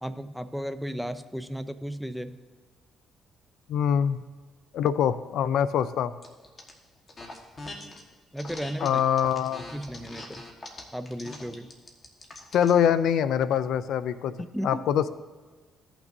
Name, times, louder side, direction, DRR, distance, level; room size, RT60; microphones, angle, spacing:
voice 1, 0.0-2.4 8.3-9.0 9.6-10.4 10.9-11.7 14.4-14.8, equal, ahead, 11 dB, 0.5 m, -35 dB
voice 2, 3.7-4.2 4.7-6.1 8.8-9.6 12.5-14.3 14.6-15.1, left 8 dB, 80° left, 14 dB, 0.3 m, -24 dB
sound 1, 6.2-6.7 7.1-8.0 8.4-12.8, left 2 dB, 35° left, 1.4 m, -42 dB
16.0 x 5.9 x 2.7 m, 1.4 s
cardioid pair, 90°, 0 cm